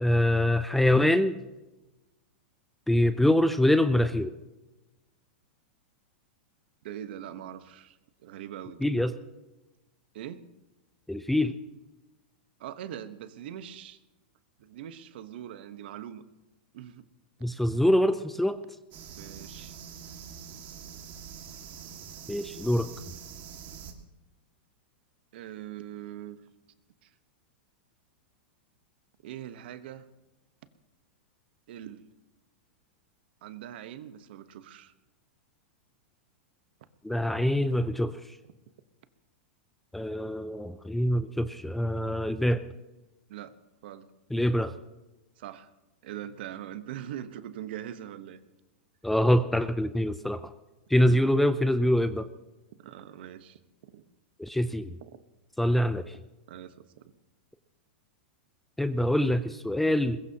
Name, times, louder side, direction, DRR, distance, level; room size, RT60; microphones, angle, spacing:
voice 1, 0.0-1.4 2.9-4.3 8.8-9.1 11.1-11.6 17.4-18.6 22.3-22.9 37.0-38.2 39.9-42.6 44.3-44.7 49.0-50.5 50.9-52.3 54.4-55.0 55.6-56.1 58.8-60.2, left 1 dB, 5° left, 12 dB, 0.4 m, -24 dB
voice 2, 6.8-8.8 10.1-10.5 12.6-14.0 14.6-16.2 16.7-17.1 19.2-19.7 25.3-26.4 27.0-27.1 29.2-30.1 31.7-32.0 33.4-34.9 43.3-43.5 43.8-44.1 45.4-45.7 46.0-48.4 51.0-51.3 52.8-53.6 53.9-54.0 55.0-55.2 56.5-57.0, right 11 dB, 60° right, 11 dB, 1.1 m, -42 dB
sound 1, 18.9-23.9, right 7 dB, 30° right, 2.0 m, -44 dB
21.5 x 21.0 x 2.9 m, 1.1 s
supercardioid pair, 150°, 6 cm